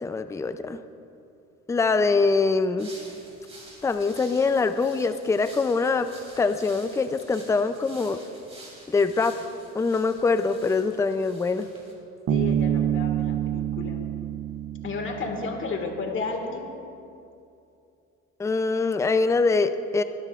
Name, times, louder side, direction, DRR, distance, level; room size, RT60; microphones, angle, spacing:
voice 1, 0.0-0.8 1.7-2.9 3.8-6.1 6.4-8.2 8.9-9.4 9.7-11.7 18.4-20.0, left 4 dB, 10° left, 10 dB, 0.4 m, -23 dB
sound 1, 2.8-11.9, right 2 dB, 20° right, 3.1 m, -49 dB
voice 2, 12.3-14.0 14.8-16.7, left 3 dB, 45° left, 3 dB, 1.8 m, -32 dB
Bass guitar, 12.3-15.8, right 10 dB, 65° right, 0.8 m, -27 dB
22.0 x 12.5 x 2.4 m, 2.6 s
cardioid pair, 125°, 29 cm